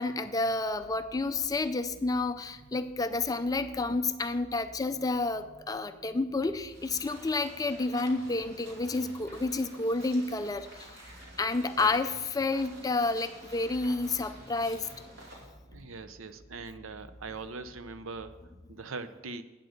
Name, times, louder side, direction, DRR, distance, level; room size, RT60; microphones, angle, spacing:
voice 1, 0.0-10.9 11.4-15.0, left 3 dB, 20° left, 10 dB, 0.4 m, -30 dB
sound 1, 0.6-18.7, equal, 35° right, 4.1 m, -55 dB
sound 2, 6.7-15.5, right 1 dB, 55° right, 2.7 m, -50 dB
voice 2, 15.7-18.4 18.7-19.4, right 4 dB, 75° right, 11 dB, 0.6 m, -41 dB
9.2 x 7.9 x 6.5 m, 1.2 s
head